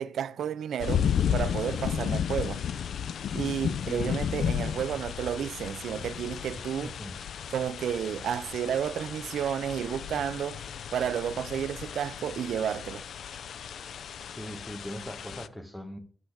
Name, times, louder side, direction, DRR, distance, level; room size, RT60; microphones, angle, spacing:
voice 1, 0.0-2.6 3.3-6.9 7.5-10.6 10.9-13.0, right 9 dB, 85° right, 0.4 m, -31 dB
sound 1, 0.8-15.5, left 8 dB, 70° left, 0.3 m, -33 dB
voice 2, 3.9-4.3 6.6-7.2 14.3-16.0, equal, 5° left, 1.1 m, -41 dB
9.9 x 8.0 x 3.4 m
wide cardioid pair, 160°, 0 cm